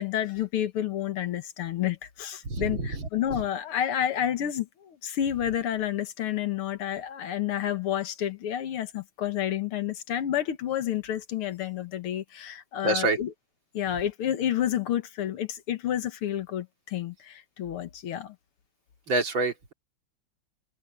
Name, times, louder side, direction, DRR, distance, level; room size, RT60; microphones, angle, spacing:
voice 1, 0.0-13.3 13.7-18.4, left 10 dB, 80° left, 2.2 m, -30 dB
voice 2, 2.4-2.9 12.8-13.2 19.1-19.7, right 2 dB, 60° right, 3.4 m, -26 dB
omnidirectional pair, 2.4 m